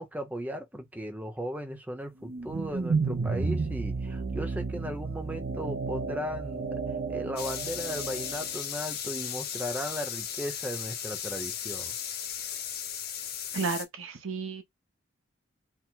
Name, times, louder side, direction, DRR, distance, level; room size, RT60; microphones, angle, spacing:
voice 1, 0.0-6.8 7.1-12.0, equal, 10° right, 0.7 m, -36 dB
sound 1, 2.2-8.5, right 4 dB, 50° right, 0.5 m, -32 dB
sound 2, 7.4-13.8, left 9 dB, 50° left, 0.8 m, -36 dB
voice 2, 13.5-14.6, right 4 dB, 80° right, 0.8 m, -32 dB
4.6 x 2.0 x 3.9 m
head